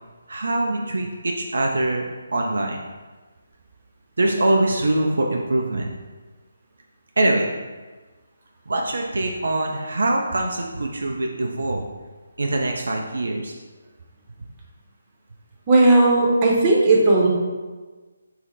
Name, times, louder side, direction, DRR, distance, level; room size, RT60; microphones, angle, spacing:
voice 1, 0.3-2.8 4.2-5.9 7.2-7.5 8.7-11.8 12.4-13.5, right 2 dB, 65° right, 1 dB, 0.3 m, -23 dB
voice 2, 15.7-17.3, right 2 dB, 25° right, -3 dB, 0.7 m, -16 dB
3.9 x 2.1 x 4.2 m, 1.3 s
figure-of-eight pair, 145°, 0 cm